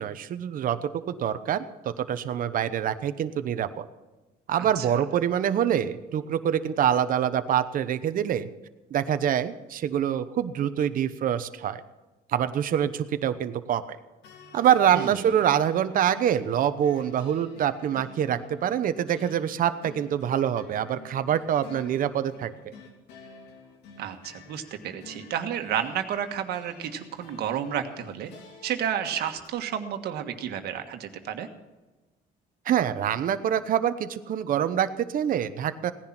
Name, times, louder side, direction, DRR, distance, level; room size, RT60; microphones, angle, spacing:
voice 1, 0.0-3.9 4.5-8.5 8.9-11.8 12.3-14.0 14.5-22.5 32.7-35.9, right 9 dB, 55° right, 11 dB, 1.0 m, -25 dB
sound 1, 14.2-29.5, left 3 dB, 85° left, 2.7 m, -50 dB
voice 2, 14.9-15.3 24.0-28.3 28.6-31.5, right 9 dB, 70° right, 6 dB, 1.6 m, -31 dB
17.5 x 10.5 x 6.0 m, 1.1 s
cardioid pair, 110°, 17 cm